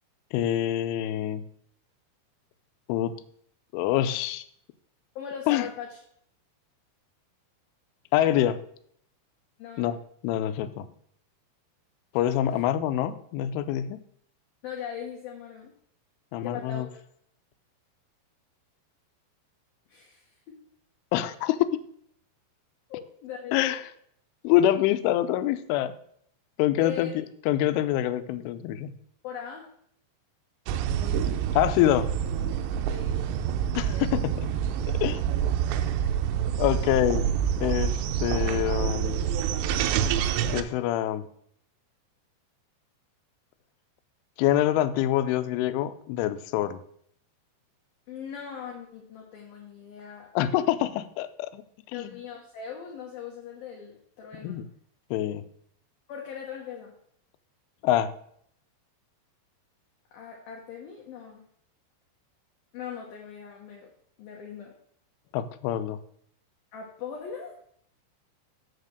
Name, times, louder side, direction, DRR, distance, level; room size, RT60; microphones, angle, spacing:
voice 1, 0.3-1.4 2.9-3.1 3.7-4.4 5.5-5.7 8.1-8.6 9.8-10.0 10.2-10.9 12.1-14.0 16.3-16.9 21.1-21.6 23.5-23.8 24.4-25.9 26.6-28.9 31.5-32.1 33.7-34.5 35.0-35.2 36.6-37.3 37.6-39.2 40.5-41.3 44.4-46.8 50.4-51.6 51.9-52.2 54.4-54.7 55.1-55.4 57.8-58.1 65.3-66.0, left 12 dB, 85° left, 12 dB, 3.1 m, -25 dB
voice 2, 5.2-6.0 9.6-9.9 14.6-15.7 16.4-17.0 19.9-20.4 22.9-23.8 26.8-27.1 29.2-29.7 32.9-33.1 36.7-36.9 48.1-50.3 51.9-54.6 56.1-57.0 60.1-61.5 62.7-63.9 64.2-64.7 66.7-67.6, left 8 dB, 70° left, 0 dB, 2.4 m, -40 dB
sound 1, 30.7-40.6, right 9 dB, 85° right, 2.5 m, -27 dB
6.9 x 6.6 x 6.4 m, 0.67 s
omnidirectional pair, 5.5 m